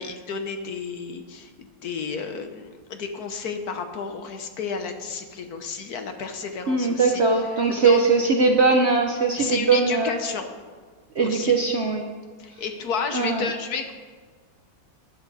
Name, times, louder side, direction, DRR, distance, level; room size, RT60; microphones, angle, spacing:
voice 1, 0.0-7.2 7.5-8.0 9.4-10.5 11.2-11.5 12.4-13.9, left 5 dB, 60° left, 6 dB, 1.3 m, -31 dB
voice 2, 6.7-10.2 11.1-12.1 13.1-13.5, right 4 dB, 50° right, 3 dB, 0.9 m, -20 dB
14.0 x 10.5 x 4.1 m, 1.5 s
omnidirectional pair, 2.0 m